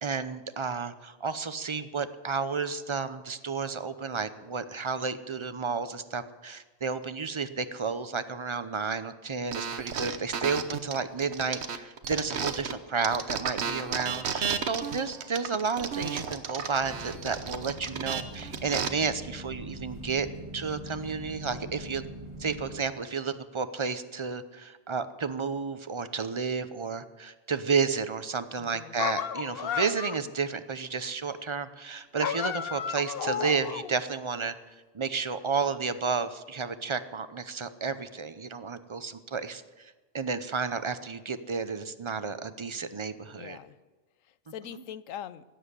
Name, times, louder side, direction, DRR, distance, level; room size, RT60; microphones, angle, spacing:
voice 1, 0.0-20.3 20.5-22.0 22.4-34.5 34.9-43.6, right 5 dB, 30° right, 11 dB, 0.6 m, -32 dB
sound 1, 9.5-12.8 13.0-18.9, right 6 dB, 60° right, 1.1 m, -33 dB
sound 2, 16.8-22.8, right 1 dB, 15° right, 3.8 m, -43 dB
voice 2, 28.6-29.0 43.3-43.8 44.2-45.4, left 10 dB, 85° left, 16 dB, 1.0 m, -42 dB
sound 3, 29.0-30.3 32.2-34.0, left 8 dB, 55° left, 0.8 m, -33 dB
16.5 x 7.9 x 9.6 m, 1.2 s
omnidirectional pair, 1.3 m